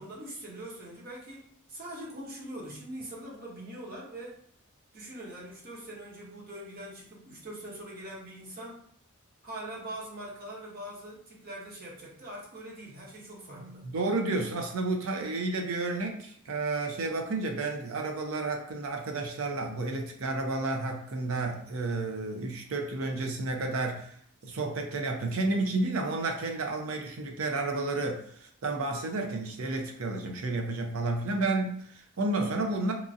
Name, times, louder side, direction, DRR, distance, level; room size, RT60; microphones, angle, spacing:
voice 1, 0.0-4.4 4.9-8.8 9.4-13.9, right 1 dB, 45° right, -3 dB, 0.9 m, -42 dB
voice 2, 13.8-24.1 24.4-32.9, right 2 dB, 80° right, 3 dB, 0.5 m, -31 dB
2.9 x 2.5 x 2.6 m, 0.62 s
head